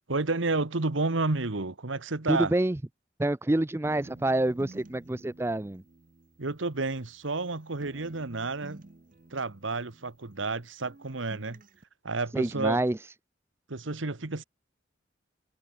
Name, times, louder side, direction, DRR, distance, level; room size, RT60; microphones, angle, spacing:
voice 1, 0.1-2.5 6.4-8.8 9.3-11.6 12.0-12.8 13.7-14.4, right 3 dB, 85° right, 1.4 m, -31 dB
voice 2, 2.3-2.8 3.2-5.8 12.3-13.0, right 1 dB, 15° right, 0.4 m, -27 dB
sound 1, 3.8-7.5 7.8-10.6 10.8-11.8, right 2 dB, 45° right, 0.8 m, -51 dB
head